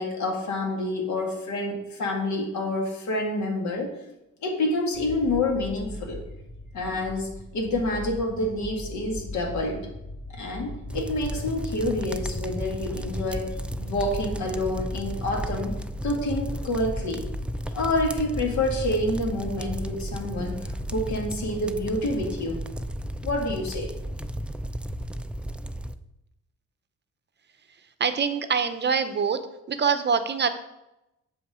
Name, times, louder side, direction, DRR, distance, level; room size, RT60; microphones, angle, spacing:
voice 1, 0.0-4.0 4.4-6.2 6.7-9.9 10.3-15.8 16.0-17.2 17.7-22.6 23.2-23.9, left 1 dB, 70° left, 1 dB, 2.0 m, -28 dB
sound 1, 4.9-21.3, left 1 dB, 50° left, 2.7 m, -39 dB
sound 2, 10.9-25.9, right 1 dB, 5° right, 0.3 m, -34 dB
voice 2, 28.0-29.4 29.7-30.5, right 6 dB, 35° right, 10 dB, 0.7 m, -24 dB
7.1 x 5.3 x 4.9 m, 0.89 s
cardioid pair, 90°, 30 cm